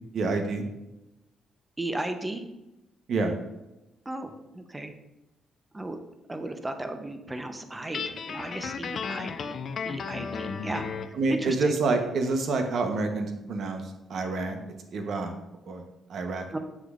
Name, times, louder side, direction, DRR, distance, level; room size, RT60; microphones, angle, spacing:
voice 1, 0.1-0.6 3.1-3.4 11.1-14.6 14.9-15.4 15.7-15.8 16.1-16.4, right 3 dB, 65° right, 5 dB, 1.0 m, -28 dB
voice 2, 1.8-2.5 4.1-4.9 5.7-6.0 6.3-11.8 16.5-16.6, right 2 dB, 15° right, 7 dB, 0.8 m, -35 dB
Guitar, 7.9-11.2, left 6 dB, 55° left, 0.4 m, -34 dB
7.6 x 6.5 x 2.5 m, 0.97 s
cardioid pair, 90°, 0 cm